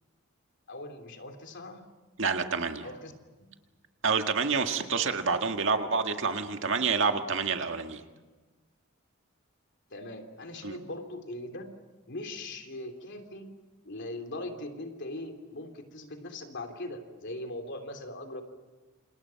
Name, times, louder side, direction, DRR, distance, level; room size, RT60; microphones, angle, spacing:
voice 1, 0.7-1.8 2.8-3.1 9.9-11.6 12.1-13.5 13.8-18.4, left 1 dB, 55° left, 6 dB, 3.2 m, -40 dB
voice 2, 2.2-2.8 4.0-8.0 10.6-10.8, right 5 dB, 65° right, 5 dB, 1.9 m, -28 dB
28.5 x 27.5 x 5.9 m, 1.2 s
head